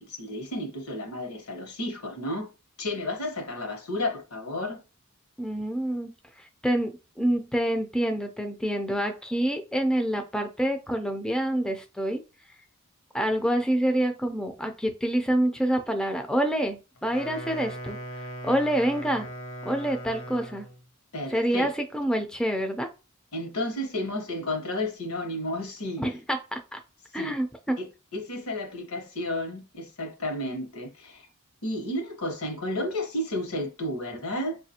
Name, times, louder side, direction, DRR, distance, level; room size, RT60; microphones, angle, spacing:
voice 1, 0.0-2.5 2.8-4.8 21.1-21.7 23.3-26.0 27.1-27.3 27.8-31.2 31.6-34.6, left 1 dB, 85° left, 1.0 m, -32 dB
voice 2, 5.4-6.1 6.6-12.2 13.1-18.0 18.4-19.3 19.6-20.7 21.3-22.9 26.0-26.8 27.1-27.8, right 1 dB, 5° left, 0.3 m, -27 dB
Wind instrument woodwind instrument, 17.0-20.8, equal, 60° left, 0.7 m, -39 dB
4.6 x 2.4 x 2.8 m
head